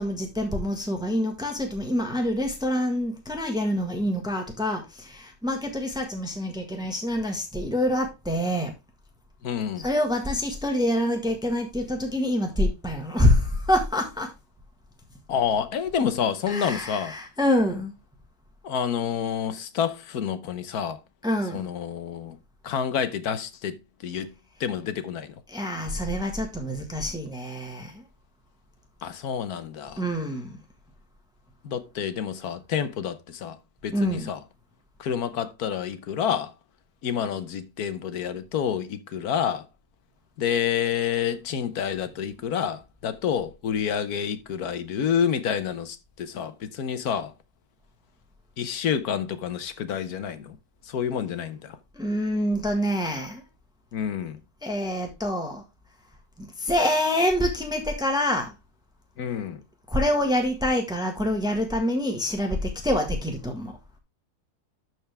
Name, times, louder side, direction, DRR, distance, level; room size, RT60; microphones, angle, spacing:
voice 1, 0.0-8.7 9.8-14.3 16.5-17.9 21.2-21.7 25.5-28.0 30.0-30.6 33.9-34.3 51.9-53.4 54.6-55.6 56.4-58.5 59.9-63.7, left 1 dB, 5° right, 1.4 m, -26 dB
voice 2, 9.4-9.8 15.3-17.1 18.6-21.0 21.5-22.4 22.6-24.3 24.6-25.3 29.0-30.0 31.6-33.6 33.8-34.4 35.0-36.5 37.0-39.7 40.4-47.3 48.6-50.6 50.8-51.8 53.9-54.4 59.2-59.6, left 8 dB, 75° left, 1.4 m, -28 dB
12.5 x 4.5 x 3.3 m
omnidirectional pair, 1.7 m